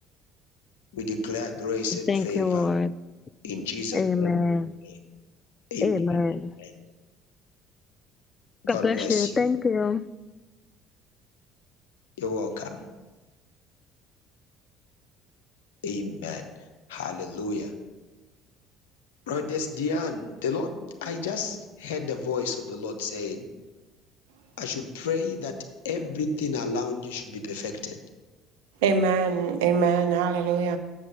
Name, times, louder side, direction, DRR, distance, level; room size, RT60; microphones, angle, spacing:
voice 1, 0.9-2.7 3.4-4.4 4.8-5.0 5.7-6.2 6.6-6.7 8.6-9.3 12.2-12.8 15.8-16.5 16.9-17.7 19.3-23.4 24.6-28.0, left 4 dB, 75° left, 5 dB, 0.9 m, -31 dB
voice 2, 2.1-2.9 3.9-4.7 5.8-6.5 8.7-10.0, left 4 dB, 30° left, 16 dB, 0.3 m, -24 dB
voice 3, 28.8-30.8, right 5 dB, 70° right, 7 dB, 0.6 m, -23 dB
7.5 x 6.8 x 5.4 m, 1.2 s
figure-of-eight pair, 55°, 0 cm